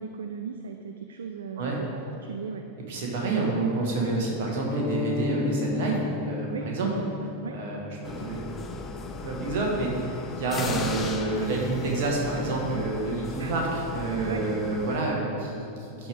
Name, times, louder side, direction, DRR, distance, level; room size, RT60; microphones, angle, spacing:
voice 1, 0.0-2.7 6.5-6.7 7.4-7.6 13.4-13.6 14.3-14.4, right 6 dB, 65° right, 6 dB, 0.3 m, -37 dB
voice 2, 2.9-6.9 7.5-8.4 9.2-16.1, right 3 dB, 50° right, -2 dB, 1.7 m, -28 dB
sound 1, 4.7-8.6, left 4 dB, 15° right, 1.0 m, -33 dB
sound 2, 8.0-15.0, left 4 dB, 20° left, 0.6 m, -36 dB
11.5 x 4.7 x 3.6 m, 2.9 s
figure-of-eight pair, 90°, 0 cm